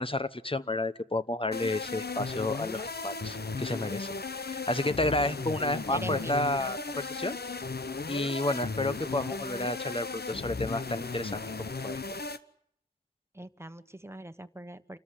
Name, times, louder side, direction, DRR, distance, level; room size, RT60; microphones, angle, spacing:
voice 1, 0.0-4.1 4.4-7.4 8.1-12.0, left 2 dB, 35° left, 12 dB, 1.1 m, -31 dB
sound 1, 1.5-12.4, left 4 dB, 85° left, 1.0 m, -36 dB
voice 2, 5.7-6.4 13.3-15.0, right 1 dB, 15° right, 10 dB, 1.3 m, -42 dB
28.0 x 13.5 x 10.0 m, 0.69 s
wide cardioid pair, 45°, 16 cm